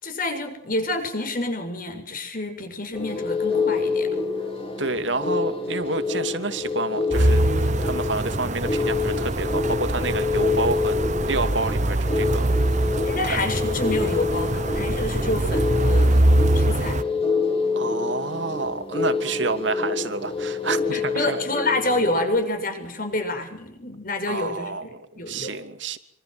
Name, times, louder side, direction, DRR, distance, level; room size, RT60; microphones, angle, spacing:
voice 1, 0.0-4.1 13.0-16.2 16.5-17.0 20.9-25.6, left 2 dB, 45° left, 6 dB, 7.0 m, -28 dB
sound 1, 2.9-22.4, left 4 dB, 30° left, 4.7 m, -27 dB
voice 2, 4.8-12.5 13.2-13.4 17.8-21.4 24.3-26.0, right 3 dB, 75° right, 9 dB, 2.7 m, -29 dB
sound 2, 7.1-17.0, right 1 dB, 40° right, 1.1 m, -23 dB
27.0 x 26.0 x 7.8 m, 0.67 s
head